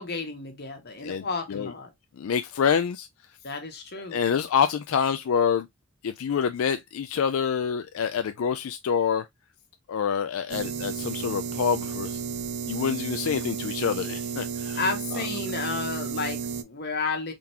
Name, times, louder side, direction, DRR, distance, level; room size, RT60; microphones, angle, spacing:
voice 1, 0.0-1.9 3.4-4.2 14.8-17.3, left 4 dB, 50° left, 1.3 m, -32 dB
voice 2, 1.0-1.7 2.2-3.1 4.1-5.7 6.0-9.3 9.9-12.2 12.7-14.8 15.1-15.2, left 7 dB, 85° left, 0.4 m, -27 dB
sound 1, 10.5-16.6, right 6 dB, 55° right, 0.5 m, -33 dB
3.8 x 3.5 x 2.8 m
head